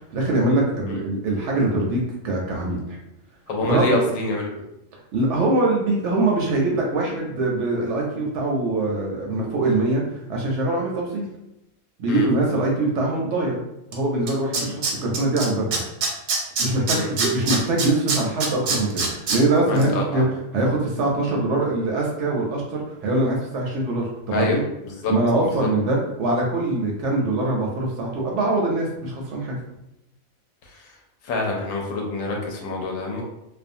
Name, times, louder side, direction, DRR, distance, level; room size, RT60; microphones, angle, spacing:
voice 1, 0.1-3.0 3.6-4.0 5.1-11.3 12.0-13.6 13.9-15.8 16.6-20.3 20.5-24.6 25.1-29.6, right 2 dB, 65° right, -1 dB, 0.8 m, -23 dB
voice 2, 3.5-4.5 12.1-12.3 14.6-14.7 16.9-17.1 19.7-20.2 24.3-24.6 24.8-25.1 25.4-25.7 31.2-33.2, left 2 dB, 75° left, 0 dB, 0.9 m, -26 dB
Tools, 13.9-14.0 14.3-15.4 15.7-19.4 19.8-19.9, right 4 dB, 85° right, 1.0 m, -23 dB
2.4 x 2.2 x 2.6 m, 0.87 s
omnidirectional pair, 1.5 m